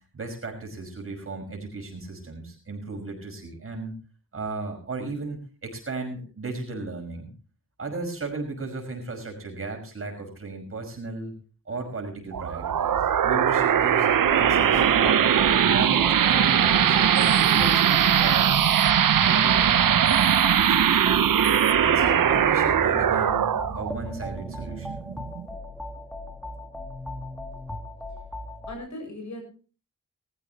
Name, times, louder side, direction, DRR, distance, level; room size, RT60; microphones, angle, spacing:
voice 1, 0.1-4.0 4.3-7.3 7.8-11.3 11.7-15.2 15.6-18.6 19.2-21.2 21.8-25.1, right 3 dB, 45° right, 2 dB, 5.6 m, -35 dB
sound 1, 12.3-25.4, right 9 dB, 85° right, 0.8 m, -21 dB
sound 2, 14.3-28.7, left 1 dB, ahead, 1.6 m, -38 dB
voice 2, 28.7-29.4, left 1 dB, 60° left, 3 dB, 7.3 m, -38 dB
21.0 x 14.5 x 2.9 m, 0.37 s
wide cardioid pair, 165°, 32 cm